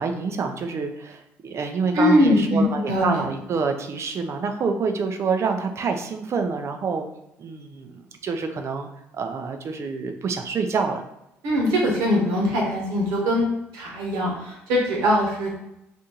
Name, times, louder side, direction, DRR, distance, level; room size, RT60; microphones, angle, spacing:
voice 1, 0.0-7.1 7.4-8.9 9.1-11.0, right 5 dB, 50° right, 6 dB, 0.5 m, -27 dB
voice 2, 1.9-3.2 11.4-13.5 13.7-15.5, left 1 dB, 75° right, -2 dB, 1.1 m, -21 dB
2.8 x 2.5 x 3.8 m, 0.84 s
hypercardioid pair, 60°, 6 cm